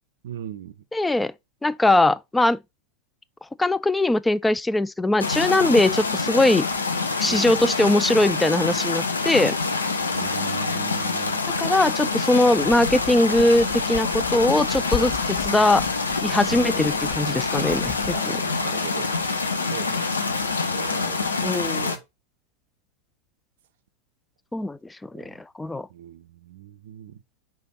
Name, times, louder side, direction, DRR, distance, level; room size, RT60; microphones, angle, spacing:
voice 1, 0.2-0.8 7.2-7.6 10.1-11.4 16.5-17.0 18.0-19.2 19.7-22.0 25.1-25.4 25.9-27.2, right 11 dB, 55° right, 0.5 m, -39 dB
voice 2, 0.9-1.3 1.6-2.6 3.6-6.7 7.2-9.6 11.6-15.9 16.2-18.4 21.4-21.8 24.5-24.8 25.1-25.9, left 2 dB, 5° left, 0.3 m, -21 dB
sound 1, 5.2-22.0, left 4 dB, 75° left, 0.9 m, -26 dB
sound 2, 12.5-18.2, left 13 dB, 40° left, 0.7 m, -37 dB
5.0 x 4.6 x 4.6 m
figure-of-eight pair, 90°, 0 cm